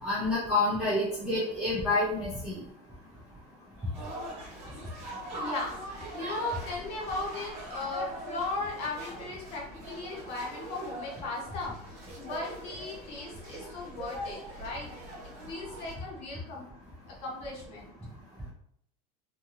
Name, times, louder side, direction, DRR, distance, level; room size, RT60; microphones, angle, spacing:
voice 1, 0.0-2.6, left 2 dB, 5° right, -10 dB, 0.3 m, -28 dB
sound 1, 3.9-15.9, right 1 dB, 30° right, 1.1 m, -42 dB
voice 2, 5.4-5.8 6.1-14.9 15.5-16.7 17.2-17.9, left 2 dB, 30° left, -3 dB, 0.8 m, -37 dB
2.9 x 2.6 x 2.4 m, 0.68 s
supercardioid pair, 175°, 21 cm